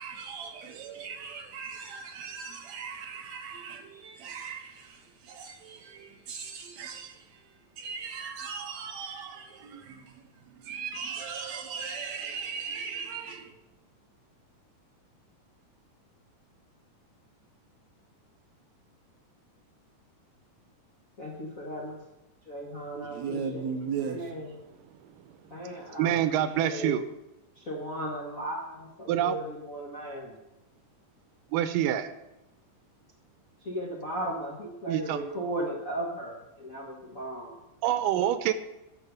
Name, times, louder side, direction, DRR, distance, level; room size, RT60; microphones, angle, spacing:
voice 1, 0.0-13.5 22.9-24.6, right 6 dB, 70° right, 1.8 m, -38 dB
voice 2, 21.2-22.0 22.5-23.6 24.1-24.4 25.5-26.9 27.6-30.3 33.6-37.5, right 1 dB, 45° left, 1.1 m, -36 dB
voice 3, 26.0-27.0 29.1-29.4 31.5-32.1 34.9-35.2 37.8-38.5, right 11 dB, 90° right, 2.4 m, -26 dB
12.5 x 4.8 x 6.6 m
omnidirectional pair, 3.8 m